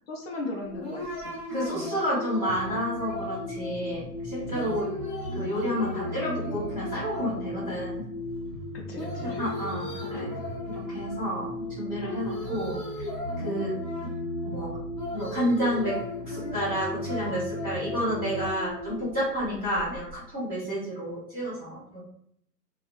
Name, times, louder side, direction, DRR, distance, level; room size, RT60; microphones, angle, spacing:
voice 1, 0.1-2.0 4.6-4.8 8.7-9.4 13.4-13.6 19.5-19.7 20.6-20.7, left 2 dB, 40° left, -1 dB, 0.5 m, -38 dB
sound 1, 0.6-20.1, left 2 dB, 20° left, 1.3 m, -36 dB
voice 2, 1.5-4.9 5.3-8.0 9.2-10.3 10.6-12.8 13.4-13.7 14.0-14.1 14.4-14.7 15.1-16.0 16.3-22.0, equal, 20° right, -12 dB, 1.5 m, -30 dB
sound 2, 2.5-18.5, right 1 dB, 35° right, 0.7 m, -39 dB
2.6 x 2.0 x 2.5 m, 0.68 s
figure-of-eight pair, 135°, 50 cm